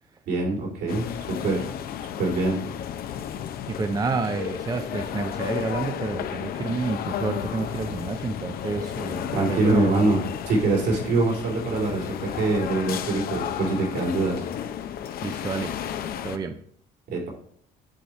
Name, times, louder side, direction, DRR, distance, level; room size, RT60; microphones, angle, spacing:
voice 1, 0.3-1.7 2.2-2.6 9.3-10.2 10.5-14.4 17.1-17.3, right 2 dB, 75° right, -2 dB, 3.5 m, -24 dB
sound 1, 0.9-16.4, left 9 dB, 60° left, 0.7 m, -33 dB
voice 2, 3.7-10.0 15.2-15.7 16.2-16.6, right 4 dB, 20° right, 7 dB, 0.6 m, -29 dB
9.7 x 4.1 x 4.5 m, 0.62 s
cardioid pair, 110°, 17 cm